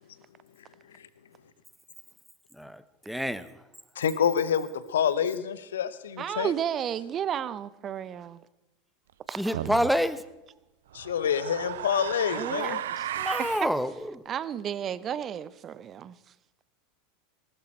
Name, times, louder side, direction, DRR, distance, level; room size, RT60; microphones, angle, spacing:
voice 1, 2.6-3.5 9.4-10.2 13.2-13.9, equal, ahead, 0.9 m, -27 dB
voice 2, 4.0-6.5 10.9-12.8, left 8 dB, 70° left, 0.9 m, -27 dB
voice 3, 6.2-8.4 9.3-9.6 12.3-13.1 13.6-13.7 14.3-16.2, right 9 dB, 35° right, 0.7 m, -33 dB
sound 1, 9.5-9.9 10.9-13.7, right 11 dB, 70° right, 0.5 m, -34 dB
19.5 x 12.5 x 4.4 m
figure-of-eight pair, 85°, 0 cm